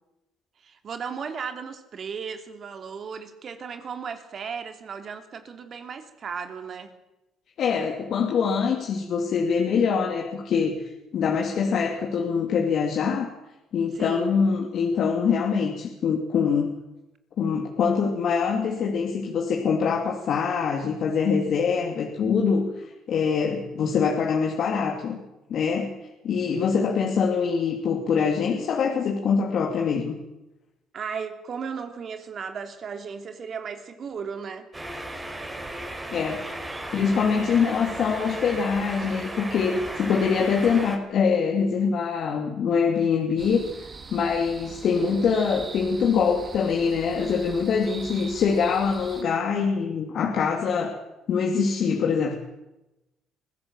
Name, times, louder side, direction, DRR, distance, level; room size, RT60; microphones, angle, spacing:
voice 1, 0.6-6.9 13.9-14.4 30.9-34.7, right 6 dB, 50° right, 8 dB, 2.9 m, -35 dB
voice 2, 7.6-10.8 11.1-13.3 13.7-16.7 17.4-25.2 25.5-26.0 26.2-30.1 36.1-36.4 36.9-50.9 51.3-52.4, left 6 dB, 60° left, 1 dB, 3.0 m, -24 dB
sound 1, 34.7-41.0, right 1 dB, 15° right, 4.6 m, -35 dB
sound 2, 43.4-49.2, right 4 dB, 30° right, 2.3 m, -42 dB
24.5 x 16.0 x 7.5 m, 0.97 s
cardioid pair, 95°, 0 cm